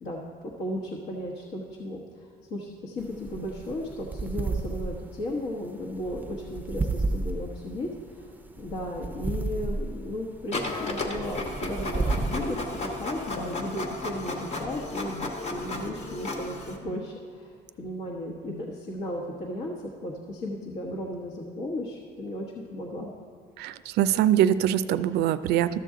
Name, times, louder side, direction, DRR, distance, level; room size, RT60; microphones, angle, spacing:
voice 1, 0.0-8.3 8.6-23.1, left 1 dB, 60° left, -2 dB, 1.1 m, -35 dB
sound 1, 3.0-13.5, right 3 dB, 10° right, 0.5 m, -33 dB
Printer, 10.5-16.8, left 2 dB, 40° left, 1.2 m, -34 dB
sound 2, 13.3-13.6 15.1-15.4 16.8-17.1 18.5-18.8, left 11 dB, 90° left, 0.5 m, -45 dB
voice 2, 23.6-25.8, right 11 dB, 75° right, 14 dB, 0.4 m, -23 dB
13.0 x 6.8 x 3.7 m, 2.3 s
cardioid pair, 110°, 17 cm